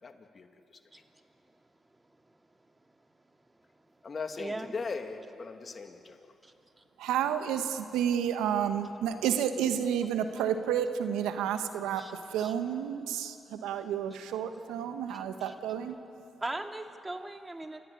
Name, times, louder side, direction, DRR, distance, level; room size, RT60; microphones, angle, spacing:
voice 1, 0.0-0.5 4.0-6.2, left 4 dB, 50° left, 5 dB, 2.3 m, -38 dB
voice 2, 0.9-1.2 2.3-2.4 2.8-2.9 3.9-4.0 4.4-4.7 6.4-6.8 12.0-12.1 12.4-12.5 15.1-15.5 16.4-17.8, right 2 dB, 20° right, 5 dB, 2.3 m, -40 dB
voice 3, 7.0-15.9, right 9 dB, 85° right, 8 dB, 1.2 m, -31 dB
28.5 x 15.5 x 9.9 m, 2.8 s
supercardioid pair, 50°, 0 cm